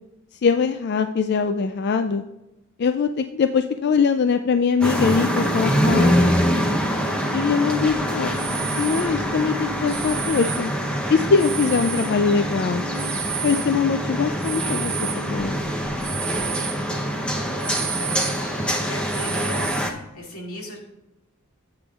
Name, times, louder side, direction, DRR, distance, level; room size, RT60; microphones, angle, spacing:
voice 1, 0.3-2.2 2.8-6.3 7.3-8.3 8.8-10.7 11.1-12.8 13.4-15.6, left 5 dB, 50° left, 8 dB, 0.3 m, -22 dB
sound 1, 4.8-19.9, equal, 5° left, 0.8 m, -24 dB
sound 2, 7.9-12.5 12.9-16.8 17.2-17.3 17.6-18.6 19.1-20.1, right 9 dB, 35° right, 0.9 m, -32 dB
voice 2, 16.8-20.8, left 1 dB, 85° left, -1 dB, 2.3 m, -39 dB
13.5 x 8.6 x 2.4 m, 0.95 s
head